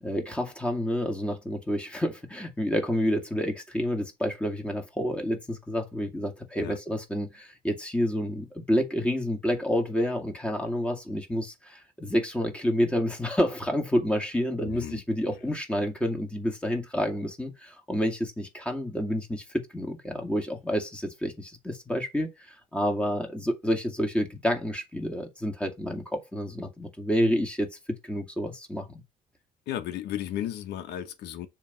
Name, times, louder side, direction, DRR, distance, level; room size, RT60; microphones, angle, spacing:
voice 1, 0.0-27.7 28.0-29.0, equal, 5° left, 2.2 m, -29 dB
voice 2, 14.6-15.0 29.7-31.5, left 11 dB, 80° left, 1.3 m, -34 dB
7.1 x 3.4 x 5.6 m
cardioid pair, 110°, 17 cm